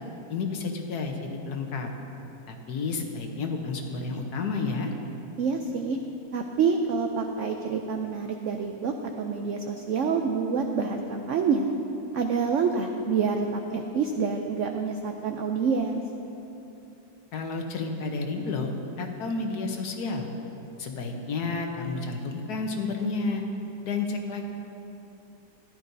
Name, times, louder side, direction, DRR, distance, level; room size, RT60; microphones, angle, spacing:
voice 1, 0.3-1.2 1.5-1.9 2.5-4.9 17.3-18.7 19.0-20.3 20.8-23.4 23.8-24.4, left 4 dB, 65° left, 3 dB, 1.3 m, -31 dB
voice 2, 5.4-6.0 6.3-11.7 12.1-16.0, right 5 dB, 80° right, 4 dB, 0.6 m, -27 dB
14.5 x 11.5 x 2.7 m, 2.9 s
omnidirectional pair, 1.9 m